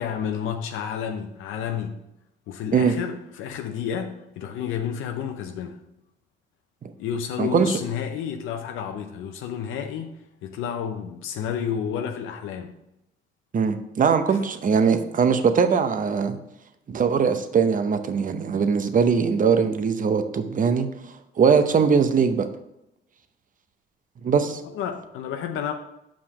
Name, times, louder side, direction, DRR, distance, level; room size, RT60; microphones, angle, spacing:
voice 1, 0.0-1.9 2.5-5.8 7.0-12.7 14.3-14.4 24.7-25.7, left 8 dB, 90° left, 0.6 m, -30 dB
voice 2, 7.4-7.7 13.5-16.4 16.9-20.9 21.4-22.5 24.2-24.6, right 6 dB, 40° right, 0.7 m, -21 dB
5.6 x 5.0 x 6.0 m
cardioid pair, 90°, 20 cm